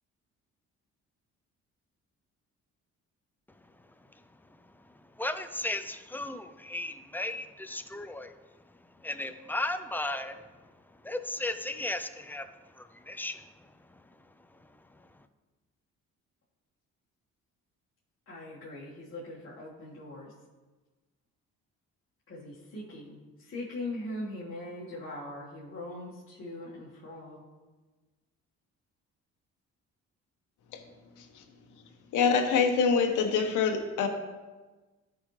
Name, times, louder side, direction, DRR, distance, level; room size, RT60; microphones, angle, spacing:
voice 1, 5.2-8.3 9.0-10.4 11.0-12.5 12.8-13.4, left 2 dB, 5° left, 9 dB, 0.5 m, -35 dB
voice 2, 18.3-20.3 22.3-27.4, left 1 dB, 45° left, -7 dB, 1.9 m, -41 dB
voice 3, 32.1-34.1, left 5 dB, 85° left, 5 dB, 1.1 m, -25 dB
13.0 x 5.2 x 3.3 m, 1.3 s
cardioid pair, 90°, 30 cm